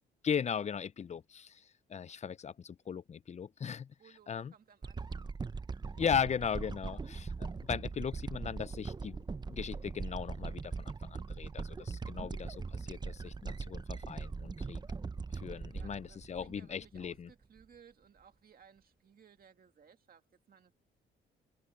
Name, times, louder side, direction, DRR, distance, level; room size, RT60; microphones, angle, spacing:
voice 1, 0.2-3.9 4.3-4.5 6.0-14.8 15.3-17.3, left 7 dB, 35° left, 0.6 m, -38 dB
voice 2, 4.0-5.3 6.8-7.1 15.7-20.7, right 7 dB, 45° right, 2.0 m, -61 dB
sound 1, 4.8-17.2 17.6-17.7, right 4 dB, 20° right, 0.6 m, -41 dB
cardioid pair, 90°, 20 cm